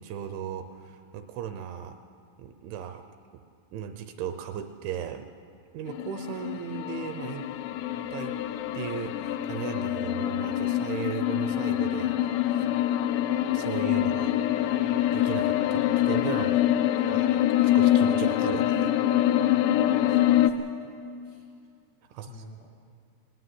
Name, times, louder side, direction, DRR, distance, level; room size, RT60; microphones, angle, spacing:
voice 1, 0.0-2.0 2.4-3.0 3.3-3.4 3.7-5.3 5.7-7.5 8.1-8.4 8.7-12.7 13.5-16.6 17.1-18.9 22.1-22.4, right 9 dB, 80° right, 8 dB, 2.8 m, -37 dB
sound 1, 5.9-20.5, left 12 dB, 85° left, 2.5 m, -25 dB
voice 2, 15.8-16.2 17.0-17.2 19.9-21.0 21.2-21.5 22.3-22.7, left 3 dB, 70° left, 0 dB, 1.9 m, -49 dB
19.0 x 15.5 x 9.8 m, 2.5 s
omnidirectional pair, 5.9 m